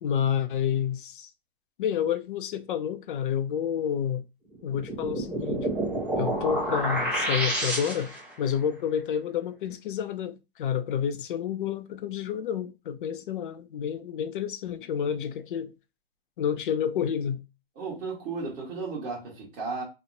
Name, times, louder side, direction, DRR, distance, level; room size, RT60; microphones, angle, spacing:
voice 1, 0.0-1.3 1.8-4.2 4.6-5.7 6.1-8.1 8.4-15.7 16.4-17.4, left 8 dB, 55° left, 0.5 m, -29 dB
sound 1, 4.7-8.3, right 1 dB, 5° right, 0.6 m, -29 dB
voice 2, 17.7-19.8, right 4 dB, 25° right, 1.2 m, -34 dB
2.9 x 2.1 x 3.8 m
hypercardioid pair, 155°, 31 cm